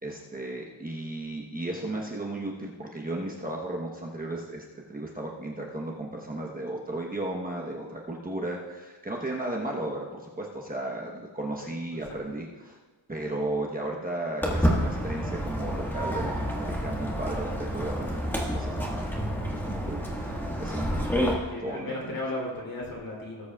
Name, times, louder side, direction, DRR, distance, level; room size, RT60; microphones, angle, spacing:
voice 1, 0.0-12.8 13.1-19.4 19.6-20.9 21.6-22.2, right 1 dB, 20° right, -2 dB, 1.1 m, -35 dB
Walk footsteps, 14.4-21.3, equal, 5° left, 1.7 m, -29 dB
voice 2, 20.6-21.2 21.5-23.5, left 1 dB, 45° left, -3 dB, 3.3 m, -36 dB
18.5 x 8.3 x 2.4 m, 1.3 s
wide cardioid pair, 150°, 46 cm